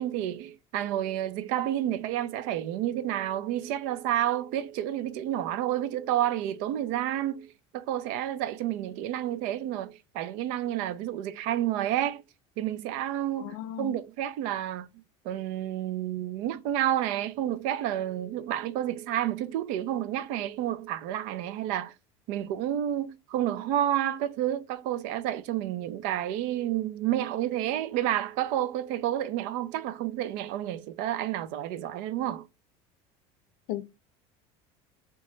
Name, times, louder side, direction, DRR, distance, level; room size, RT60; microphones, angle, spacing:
voice 1, 0.0-12.2 12.6-14.9 15.2-21.9 22.3-32.5, right 12 dB, 70° right, 0.4 m, -30 dB
voice 2, 13.4-13.9 33.7-33.8, left 13 dB, 85° left, 0.4 m, -35 dB
2.8 x 2.2 x 3.1 m
supercardioid pair, 125°, 14 cm